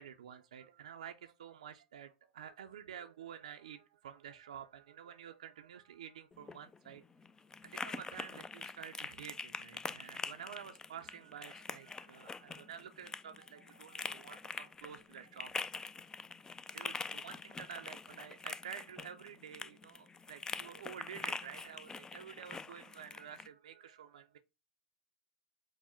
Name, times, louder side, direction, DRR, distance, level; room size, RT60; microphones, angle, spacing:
voice 1, 0.0-7.0 7.6-16.0 16.7-24.4, right 9 dB, 85° right, 0.4 m, -50 dB
sound 1, 6.3-23.5, left 4 dB, 20° left, 0.3 m, -45 dB
4.6 x 2.0 x 4.3 m
hypercardioid pair, 90°, 4 cm